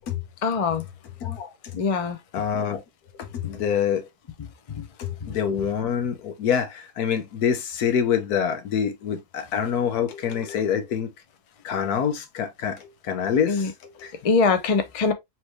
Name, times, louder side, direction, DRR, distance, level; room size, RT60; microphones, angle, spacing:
voice 1, 0.4-0.8 1.7-2.2 4.8-4.9 13.5-13.7 14.2-15.1, left 4 dB, 40° left, 0.5 m, -22 dB
voice 2, 2.3-2.8 3.2-4.0 5.0-11.1 11.6-14.1, left 8 dB, 85° left, 1.4 m, -26 dB
4.4 x 3.1 x 3.1 m
omnidirectional pair, 1.6 m